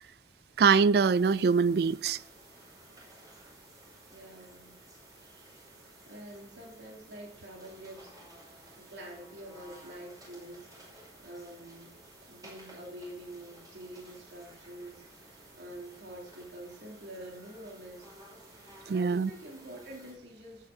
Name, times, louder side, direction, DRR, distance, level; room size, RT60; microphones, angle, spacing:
voice 1, 0.6-2.2 18.9-19.3, right 5 dB, 60° right, 0.3 m, -23 dB
sound 1, 1.0-20.1, right 1 dB, 20° right, 5.4 m, -55 dB
voice 2, 4.1-4.8 6.1-8.1 8.8-12.0 12.3-18.1 18.8-20.7, right 1 dB, 80° right, 2.9 m, -46 dB
13.5 x 8.4 x 3.8 m
head